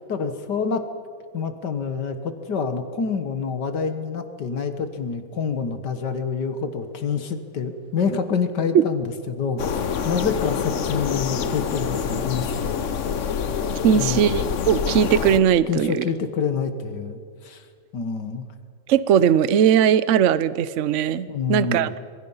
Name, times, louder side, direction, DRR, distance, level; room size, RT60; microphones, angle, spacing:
voice 1, 0.1-0.8 1.3-9.7 10.0-12.8 13.8-14.3 15.7-17.6 17.9-18.5 21.3-21.9, left 5 dB, 65° left, 8 dB, 1.9 m, -27 dB
sound 1, 9.6-15.4, left 7 dB, 50° left, 1.0 m, -26 dB
voice 2, 13.8-16.0 18.9-21.9, right 8 dB, 60° right, 16 dB, 0.8 m, -19 dB
26.5 x 22.0 x 5.6 m, 2.1 s
omnidirectional pair, 2.0 m